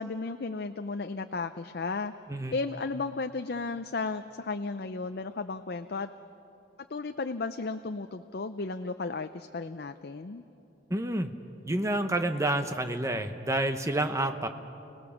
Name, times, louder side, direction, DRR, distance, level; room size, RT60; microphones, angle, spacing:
voice 1, 0.0-2.1 2.5-6.1 6.9-10.4, left 3 dB, 55° left, 8 dB, 0.5 m, -34 dB
voice 2, 10.9-11.3 11.6-14.5, right 1 dB, 15° right, 7 dB, 0.9 m, -29 dB
30.0 x 18.0 x 7.2 m, 2.8 s
head